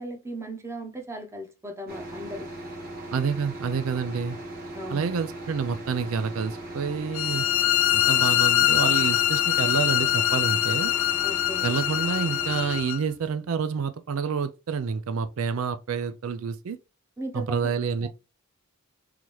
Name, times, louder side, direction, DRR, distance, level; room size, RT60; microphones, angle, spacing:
voice 1, 0.0-2.5 4.7-5.2 11.2-11.7 17.2-17.7 18.0-18.1, right 1 dB, 15° right, 0.8 m, -37 dB
sound 1, 1.9-12.8, right 1 dB, 45° right, 1.5 m, -38 dB
voice 2, 3.1-4.4 4.9-7.5 7.9-10.9 11.6-16.8 17.3-18.1, right 5 dB, 85° right, 0.4 m, -28 dB
sound 2, 7.1-13.0, left 13 dB, 65° left, 0.4 m, -23 dB
3.9 x 2.9 x 3.0 m
head